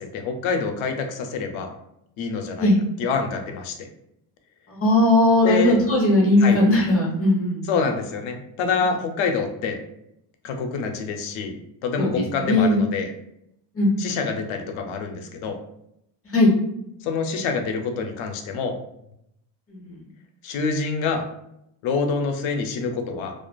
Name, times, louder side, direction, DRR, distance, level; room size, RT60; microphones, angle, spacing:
voice 1, 0.0-1.7 2.2-2.7 3.0-3.9 5.4-5.8 6.4-6.6 7.7-9.8 10.4-11.6 11.8-13.1 14.0-15.6 17.0-18.7 20.4-21.2 21.8-23.3, left 4 dB, 75° left, 5 dB, 0.6 m, -26 dB
voice 2, 4.7-7.7 12.0-12.8 13.7-14.2 16.2-16.5 19.7-20.0, left 1 dB, 30° left, -3 dB, 0.9 m, -19 dB
2.4 x 2.4 x 2.2 m, 0.78 s
cardioid pair, 125°, 49 cm